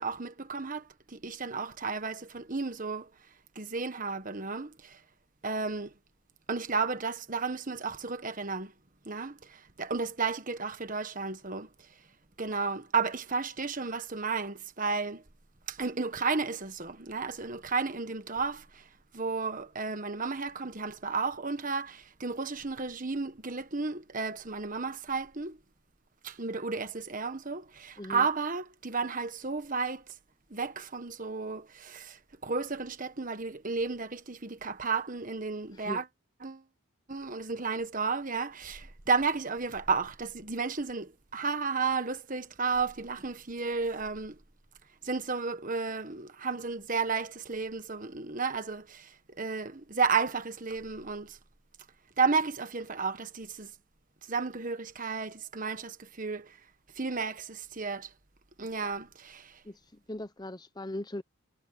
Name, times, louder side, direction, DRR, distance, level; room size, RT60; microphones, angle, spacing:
voice 1, 0.0-3.1 3.5-5.0 5.4-5.9 6.5-8.7 9.0-11.9 12.4-15.2 15.7-18.9 19.1-25.6 26.2-30.0 30.5-36.0 36.4-36.6 37.1-44.4 45.0-51.4 52.2-53.7 54.3-56.6 56.9-58.1 58.6-59.6, right 4 dB, 40° right, 1.4 m, -33 dB
voice 2, 59.6-61.2, left 1 dB, 20° left, 0.9 m, -39 dB
head